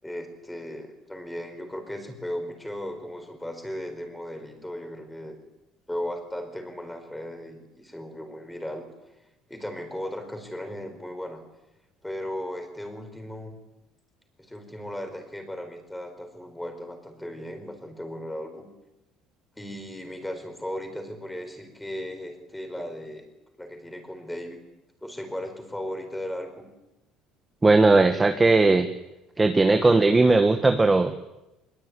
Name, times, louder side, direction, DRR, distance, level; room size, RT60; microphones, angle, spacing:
voice 1, 0.0-5.4 5.9-8.8 9.5-11.4 12.0-13.5 14.4-18.7 19.6-23.3 23.6-24.6 25.0-26.7, left 1 dB, 5° left, 6 dB, 5.0 m, -36 dB
voice 2, 27.6-28.9 29.4-31.2, right 3 dB, 10° right, 6 dB, 1.4 m, -18 dB
24.5 x 22.5 x 9.8 m, 0.95 s
cardioid pair, 165°, 0 cm